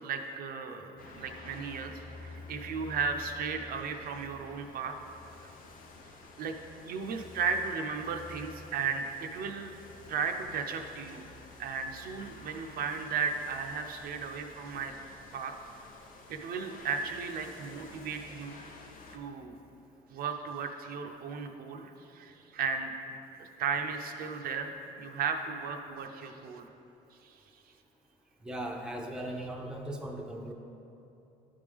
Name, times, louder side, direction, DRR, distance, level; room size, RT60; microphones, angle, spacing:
voice 1, 0.0-1.9 2.2-4.9 6.4-6.5 6.9-9.7 10.1-11.2 11.6-14.9 15.3-15.5 16.3-18.6 19.1-19.6 20.1-23.0 23.4-26.7 27.2-27.3, right 5 dB, 60° right, 4 dB, 0.5 m, -35 dB
sound 1, 1.0-19.2, left 3 dB, 55° left, 0.7 m, -50 dB
voice 2, 28.4-30.5, right 1 dB, 5° right, 1 dB, 0.6 m, -38 dB
10.5 x 3.5 x 3.5 m, 3.0 s
cardioid pair, 110°, 17 cm